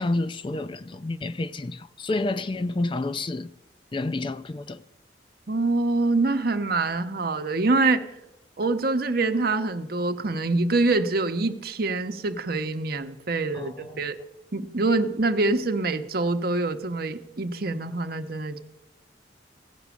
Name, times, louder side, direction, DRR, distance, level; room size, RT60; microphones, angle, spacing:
voice 1, 0.0-3.5 3.9-4.8 13.5-14.1, left 2 dB, 30° left, 0.4 m, -29 dB
voice 2, 5.5-8.0 8.6-14.2 14.5-18.6, right 3 dB, 55° right, 0.9 m, -25 dB
16.5 x 6.1 x 8.3 m
head